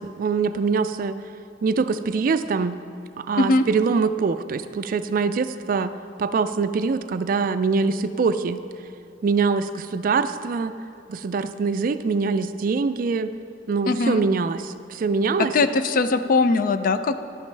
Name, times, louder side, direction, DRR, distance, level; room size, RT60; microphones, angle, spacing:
voice 1, 0.2-1.2 1.6-2.7 3.3-5.9 6.2-8.6 9.2-9.7 9.9-10.7 11.1-13.3 13.7-14.6 15.0-15.5, right 4 dB, 50° right, 12 dB, 0.3 m, -23 dB
voice 2, 13.9-14.2 15.5-17.2, left 3 dB, 50° left, 11 dB, 0.4 m, -20 dB
11.0 x 9.2 x 3.3 m, 2.5 s
head